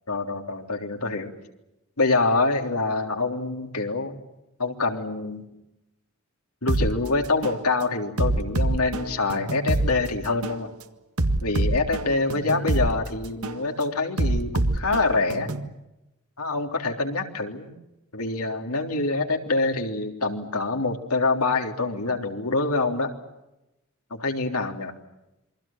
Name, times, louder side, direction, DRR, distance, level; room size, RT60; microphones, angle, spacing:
voice 1, 0.1-1.3 2.0-4.2 4.6-5.5 6.6-10.7 11.4-15.5 16.4-17.7 18.1-23.1 24.1-24.9, left 3 dB, 85° left, 3 dB, 3.5 m, -25 dB
sound 1, 6.7-6.9 7.4-7.6 8.2-9.9 10.4-10.6 11.2-12.9 13.4-13.6 14.2-15.7, right 1 dB, 80° right, 1.7 m, -25 dB
27.5 x 24.0 x 7.4 m, 0.94 s
head